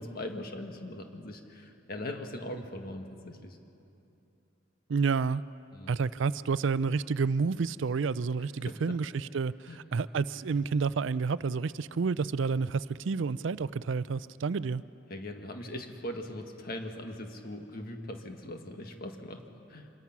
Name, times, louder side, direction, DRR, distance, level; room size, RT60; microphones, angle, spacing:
voice 1, 0.0-3.6 5.7-5.9 8.7-9.0 9.7-9.8 15.1-19.9, left 1 dB, 50° left, 4 dB, 1.7 m, -40 dB
voice 2, 4.9-5.4 5.9-14.8, right 5 dB, 70° right, 17 dB, 0.4 m, -29 dB
25.5 x 22.0 x 6.0 m, 2.8 s
head